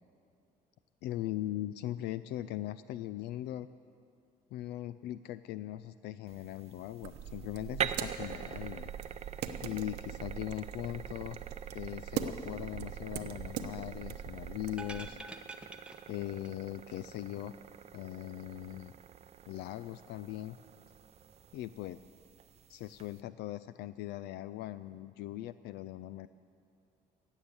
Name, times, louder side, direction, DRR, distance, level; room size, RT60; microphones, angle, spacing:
voice 1, 1.0-3.7 4.5-8.9 9.6-11.4 11.7-15.2 16.1-17.5 17.9-18.9 19.5-20.6 21.5-22.0 22.7-26.3, left 14 dB, 80° left, 14 dB, 0.4 m, -40 dB
sound 1, 6.3-23.2, right 8 dB, 40° right, 0.5 m, -45 dB
sound 2, 7.0-15.1, right 9 dB, 85° right, 0.9 m, -42 dB
sound 3, 14.7-16.6 16.9-17.0, right 2 dB, 5° right, 0.8 m, -47 dB
16.0 x 7.3 x 9.7 m, 2.4 s
cardioid pair, 110°, 17 cm